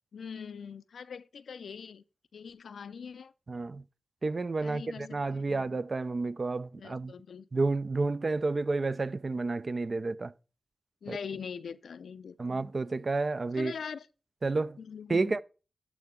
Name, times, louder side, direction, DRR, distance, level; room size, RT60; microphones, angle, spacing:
voice 1, 0.1-2.0 2.3-3.3 4.6-5.7 6.8-7.5 11.0-12.7 13.6-14.1 14.8-15.4, left 6 dB, 80° left, 0.4 m, -42 dB
voice 2, 3.5-3.8 4.2-7.1 7.5-10.3 11.1-11.2 12.4-13.7 14.4-14.8 15.1-15.4, right 3 dB, 50° right, 0.4 m, -30 dB
12.0 x 4.8 x 3.7 m
cardioid pair, 50°, 0 cm